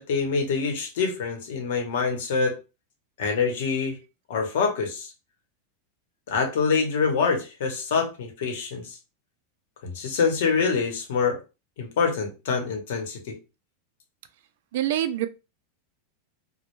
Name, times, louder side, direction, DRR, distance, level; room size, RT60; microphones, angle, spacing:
voice 1, 0.0-2.6 3.2-4.0 4.3-5.1 6.3-9.0 9.8-11.4 11.8-13.3, left 5 dB, 75° left, 0.8 m, -25 dB
voice 2, 14.7-15.3, right 12 dB, 70° right, 0.3 m, -25 dB
2.1 x 2.1 x 3.0 m
supercardioid pair, 150°, 0 cm